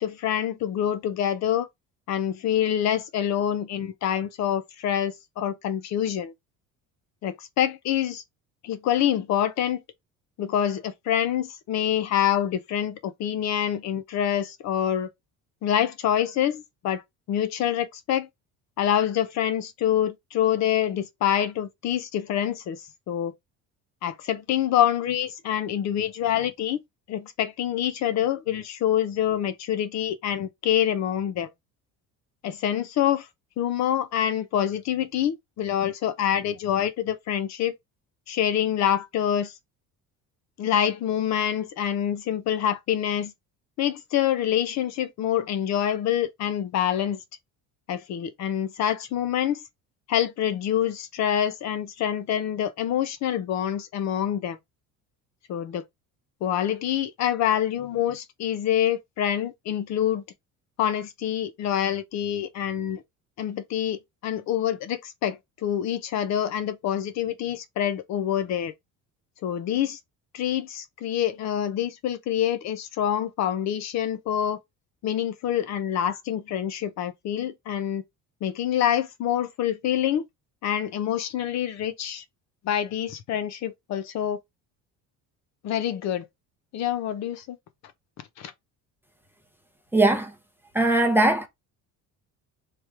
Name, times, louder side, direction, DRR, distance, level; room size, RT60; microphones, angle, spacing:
voice 1, 0.0-1.7 2.1-6.3 7.2-8.2 8.6-9.8 10.4-15.1 15.6-17.0 17.3-18.3 18.8-22.8 23.1-23.3 24.0-26.8 27.1-31.5 32.4-33.3 33.6-37.8 38.3-39.5 40.6-43.3 43.8-47.2 47.9-49.6 50.1-54.6 55.5-55.8 56.4-60.2 60.8-63.0 63.4-68.7 69.4-70.0 70.3-74.6 75.0-78.0 78.4-80.2 80.6-82.2 82.6-84.4 85.6-86.3 86.7-87.6 88.4-88.5, left 10 dB, 50° left, 0.7 m, -26 dB
voice 2, 89.9-90.3 90.7-91.5, right 2 dB, 5° right, 0.6 m, -20 dB
3.3 x 2.9 x 4.6 m
cardioid pair, 155°, 34 cm